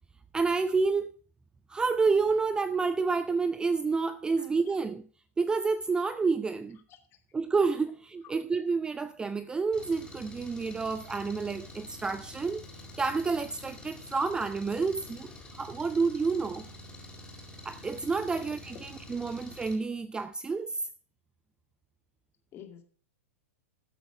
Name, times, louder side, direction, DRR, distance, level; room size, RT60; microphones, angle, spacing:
voice 1, 0.3-1.1 1.7-5.0 5.4-6.8 7.3-12.6 13.0-15.3 15.5-16.7 17.6-20.9, right 4 dB, 10° right, 0.5 m, -29 dB
voice 2, 4.4-4.7 6.9-7.2 18.3-18.5 22.5-22.8, left 9 dB, 30° left, 2.4 m, -51 dB
Engine, 9.7-19.8, left 1 dB, 10° left, 4.1 m, -47 dB
13.5 x 7.8 x 4.9 m
figure-of-eight pair, 105°, 8 cm